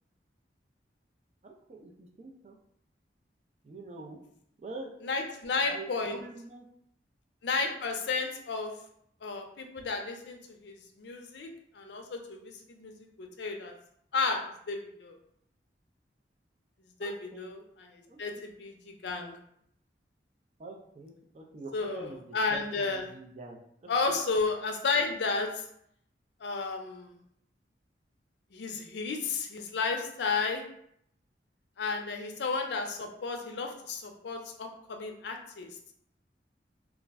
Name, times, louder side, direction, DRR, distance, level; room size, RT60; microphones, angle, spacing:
voice 1, 1.4-2.5 3.6-4.2 4.6-4.9 5.7-6.6 17.0-17.5 18.1-18.4 20.6-22.2 22.5-23.6, right 3 dB, 40° right, 1 dB, 0.4 m, -45 dB
voice 2, 5.0-6.2 7.4-8.7 9.2-13.7 14.1-14.4 14.7-15.2 17.0-19.4 21.7-23.1 23.9-25.6 26.4-27.2 28.5-30.6 31.8-35.7, left 4 dB, 75° left, 3 dB, 0.4 m, -33 dB
2.4 x 2.0 x 3.4 m, 0.70 s
head